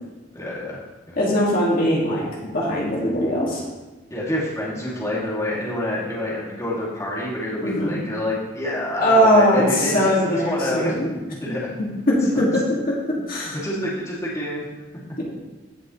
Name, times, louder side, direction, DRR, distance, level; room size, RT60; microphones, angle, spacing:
voice 1, 0.3-0.8 1.1-1.2 4.1-10.9 11.4-11.7 13.6-14.7, left 1 dB, 20° left, -7 dB, 2.5 m, -27 dB
voice 2, 1.2-2.3 2.5-3.6 7.6-8.0 9.0-11.1 11.4-11.6 12.1-13.0 13.3-13.6, equal, 50° left, -4 dB, 2.2 m, -20 dB
16.0 x 6.1 x 3.2 m, 1.2 s
head